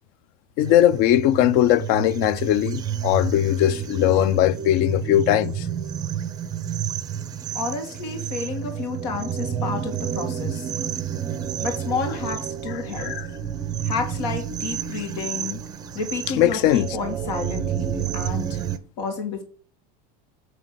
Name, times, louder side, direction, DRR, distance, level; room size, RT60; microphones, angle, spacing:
voice 1, 0.6-5.7 13.0-13.3 16.4-16.9, left 13 dB, 45° left, 0.4 m, -19 dB
sound 1, 0.6-18.8, right 8 dB, 20° right, 0.5 m, -30 dB
voice 2, 7.5-10.7 11.6-13.1 13.8-15.6 15.9-18.6 19.0-19.4, left 4 dB, 85° left, 2.0 m, -30 dB
8.9 x 3.3 x 6.7 m
supercardioid pair, 160°, 20 cm